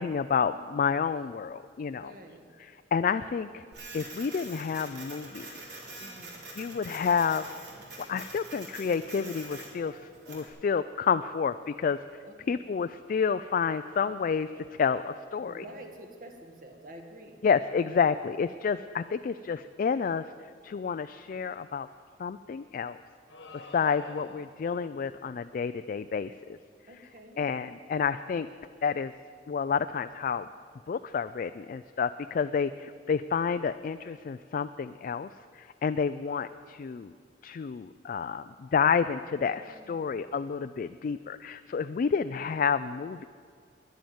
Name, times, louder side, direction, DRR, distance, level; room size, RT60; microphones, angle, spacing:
voice 1, 0.0-2.1 2.9-3.6 3.9-5.5 6.6-7.5 8.1-10.0 10.3-12.0 12.5-14.5 14.8-15.6 17.4-20.2 20.6-21.9 22.2-23.0 23.7-26.3 27.4-28.5 28.8-29.1 29.5-30.5 30.9-35.3 35.6-37.1 37.4-43.2, left 6 dB, 50° left, 10 dB, 0.3 m, -29 dB
voice 2, 2.0-2.5 6.0-6.4 12.3-12.6 15.4-17.4 26.9-27.5 39.6-40.4 42.3-42.6, right 1 dB, 50° right, 4 dB, 1.7 m, -49 dB
Printer, 3.7-10.5, right 2 dB, 70° right, 3.3 m, -45 dB
sound 1, 23.3-24.7, left 3 dB, 85° left, 1.4 m, -47 dB
10.5 x 10.5 x 9.4 m, 2.1 s
head